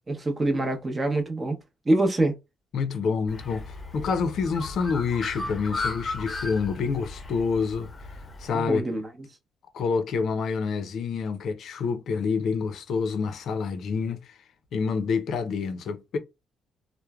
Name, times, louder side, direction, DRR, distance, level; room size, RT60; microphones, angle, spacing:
voice 1, 0.1-1.6 1.9-2.3 8.5-9.1, right 2 dB, 25° right, 0.7 m, -25 dB
voice 2, 2.7-3.7 3.9-7.9 8.4-8.9 9.7-14.2 14.7-16.2, left 5 dB, 70° left, 0.5 m, -27 dB
Bird, 3.3-8.5, left 3 dB, 30° left, 0.7 m, -35 dB
3.1 x 2.1 x 2.3 m
cardioid pair, 90°, 0 cm